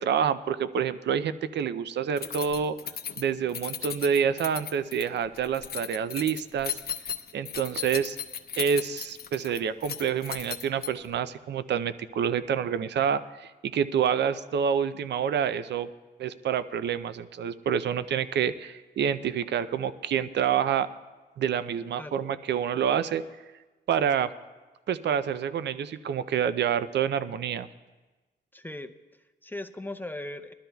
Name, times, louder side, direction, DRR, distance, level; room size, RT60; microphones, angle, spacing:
voice 1, 0.0-2.8 3.2-6.7 7.3-8.2 8.6-15.9 16.2-20.9 21.4-23.2 23.9-24.3 24.9-27.7, right 8 dB, 75° right, 13 dB, 0.5 m, -27 dB
Keys jangling, 2.2-11.2, left 8 dB, 60° left, 0.7 m, -36 dB
voice 2, 28.5-30.5, left 1 dB, 10° left, 9 dB, 0.5 m, -39 dB
21.0 x 12.5 x 2.2 m, 1.2 s
cardioid pair, 90°, 18 cm